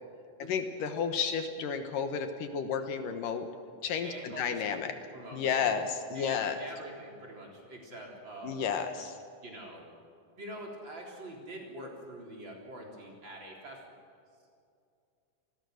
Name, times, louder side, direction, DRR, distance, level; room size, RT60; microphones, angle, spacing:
voice 1, 0.4-3.5 3.8-5.0 5.3-6.6 8.4-9.2, left 6 dB, 75° left, 7 dB, 2.8 m, -32 dB
voice 2, 4.0-5.6 6.1-8.7 9.4-9.8 10.3-13.8, right 1 dB, 35° right, -1 dB, 4.2 m, -45 dB
28.5 x 20.5 x 6.6 m, 2.4 s
omnidirectional pair, 4.0 m